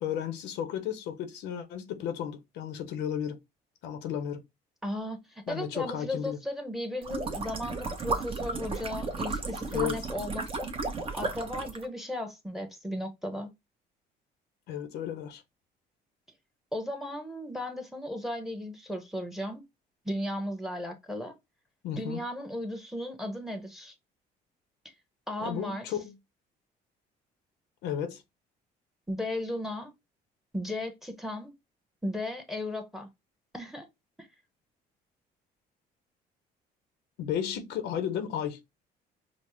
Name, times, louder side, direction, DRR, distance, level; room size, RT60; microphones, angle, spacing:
voice 1, 0.0-3.4 3.8-4.4 5.5-6.4 9.7-10.0 14.7-15.4 21.8-22.2 25.4-26.1 27.8-28.2 37.2-38.6, left 9 dB, 85° left, 0.8 m, -33 dB
voice 2, 4.8-10.7 11.1-13.5 16.7-19.6 20.0-21.3 22.0-23.9 25.3-25.9 29.1-29.9 30.5-31.5 32.0-33.1 33.5-33.9 34.2-34.3, left 1 dB, ahead, 1.0 m, -35 dB
sound 1, 7.0-11.9, right 3 dB, 35° right, 0.9 m, -34 dB
5.2 x 2.1 x 3.0 m
cardioid pair, 110°, 17 cm